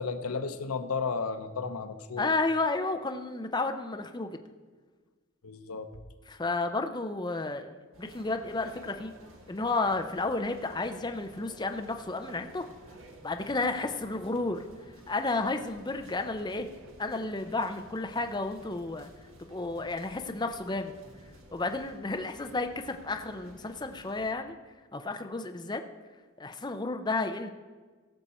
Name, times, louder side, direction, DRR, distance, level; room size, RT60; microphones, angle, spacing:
voice 1, 0.0-2.4 5.4-5.9, left 4 dB, 85° left, 9 dB, 0.8 m, -33 dB
voice 2, 2.2-4.4 6.3-9.1 9.5-12.6 13.2-14.6 15.1-16.7 17.0-19.1 19.5-20.9 21.5-24.5 24.9-25.8 26.4-27.5, left 3 dB, 20° left, 6 dB, 0.5 m, -32 dB
sound 1, 7.9-24.3, right 1 dB, 65° right, 1.5 m, -53 dB
17.0 x 6.6 x 4.2 m, 1.4 s
head